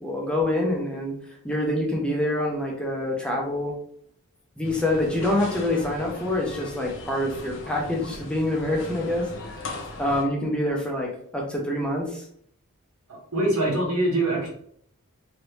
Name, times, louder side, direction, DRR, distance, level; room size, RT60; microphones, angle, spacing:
voice 1, 0.0-1.1 1.4-3.7 4.6-9.3 10.0-12.3, left 1 dB, 5° left, -1 dB, 0.5 m, -26 dB
sound 1, 4.6-10.2, left 2 dB, 55° left, 0.6 m, -39 dB
voice 2, 13.1-14.5, right 1 dB, 85° right, -3 dB, 1.4 m, -24 dB
3.1 x 2.5 x 3.0 m, 0.66 s
head